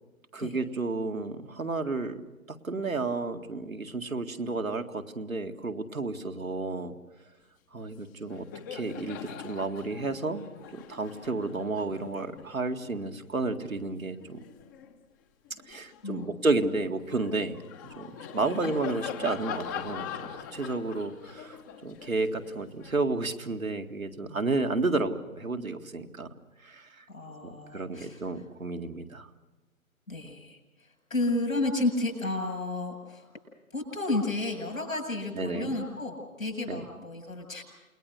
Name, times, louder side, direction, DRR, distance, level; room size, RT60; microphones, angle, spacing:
voice 1, 0.3-2.2 2.6-7.0 7.7-8.5 8.7-10.5 10.7-14.4 15.7-26.3 26.6-27.0 27.4-29.3 35.4-35.7 36.7-36.8, right 3 dB, 75° right, 5 dB, 2.1 m, -32 dB
Laughter, 7.8-8.0 8.2-14.9 15.4-23.6, left 8 dB, 15° left, 1.1 m, -42 dB
voice 2, 16.0-16.4 18.4-18.7 27.1-28.4 30.1-33.3 33.7-37.6, left 2 dB, 75° left, 3 dB, 7.9 m, -32 dB
29.0 x 20.5 x 6.5 m, 1.1 s
figure-of-eight pair, 140°, 41 cm